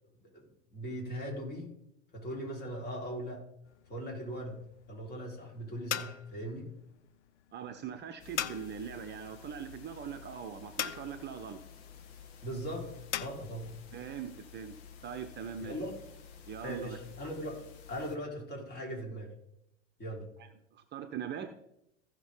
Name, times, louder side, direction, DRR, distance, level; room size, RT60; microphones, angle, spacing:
voice 1, 0.7-1.7 2.1-3.4 3.9-4.6 4.9-6.7 12.4-12.9 13.2-13.7 15.6-15.9 16.6-17.6 17.9-19.3 20.0-20.2, equal, 30° left, -1 dB, 4.7 m, -39 dB
sound 1, 3.6-13.3, left 11 dB, 75° left, 0.6 m, -42 dB
voice 2, 7.5-11.6 13.9-14.8 15.0-15.7 16.5-17.0 20.7-21.5, right 8 dB, 30° right, 7 dB, 1.0 m, -41 dB
sound 2, 8.2-18.2, left 7 dB, 55° left, 1.7 m, -52 dB
15.5 x 6.5 x 3.8 m, 0.78 s
figure-of-eight pair, 90°, 35 cm